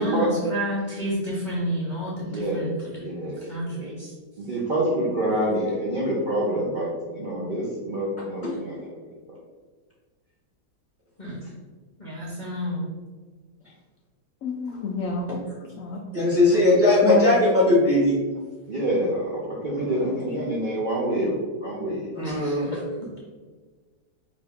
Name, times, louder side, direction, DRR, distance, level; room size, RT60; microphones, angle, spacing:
voice 1, 0.0-3.1 3.4-4.1 5.2-5.5 11.2-11.4 12.0-12.9 22.2-22.8, equal, 40° left, -5 dB, 0.7 m, -30 dB
voice 2, 2.2-2.6 3.0-3.4 3.7-3.9 4.4-6.9 7.1-8.7 18.7-22.5, right 1 dB, 65° right, -5 dB, 0.4 m, -27 dB
voice 3, 14.4-15.3 15.8-16.0 17.0-17.3, left 3 dB, 80° left, 1 dB, 0.7 m, -27 dB
voice 4, 16.1-18.2 19.8-20.3 22.1-22.7, left 2 dB, 10° right, -7 dB, 0.9 m, -20 dB
4.9 x 2.8 x 3.4 m, 1.4 s
omnidirectional pair, 1.9 m